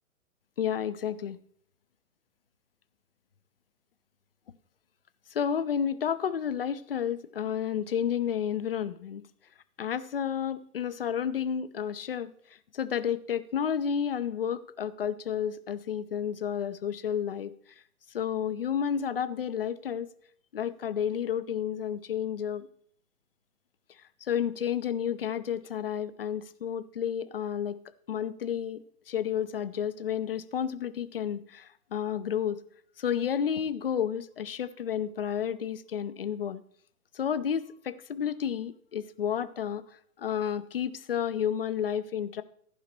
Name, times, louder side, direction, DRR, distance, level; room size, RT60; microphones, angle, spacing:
voice 1, 0.6-1.4 5.3-9.2 9.8-12.3 12.7-17.5 18.1-20.1 20.5-22.7 24.2-27.8 28.1-32.6 33.0-36.6 37.1-39.8 40.2-42.4, left 8 dB, 40° left, 15 dB, 0.5 m, -31 dB
13.5 x 5.6 x 4.4 m, 0.62 s
figure-of-eight pair, 125°, 45 cm